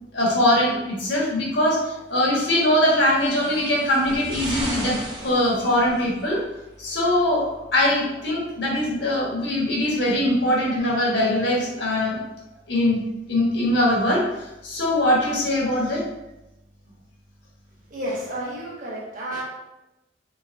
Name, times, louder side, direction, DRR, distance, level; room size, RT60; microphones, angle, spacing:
voice 1, 0.1-5.0 5.2-6.4 6.8-12.2 12.7-13.0 13.3-16.0, left 1 dB, 80° left, -3 dB, 1.3 m, -22 dB
sound 1, 2.9-6.2 7.2-7.3, right 1 dB, 25° right, 0.8 m, -35 dB
voice 2, 17.9-19.4, right 1 dB, 45° right, -5 dB, 1.3 m, -31 dB
3.8 x 3.8 x 2.6 m, 0.94 s
head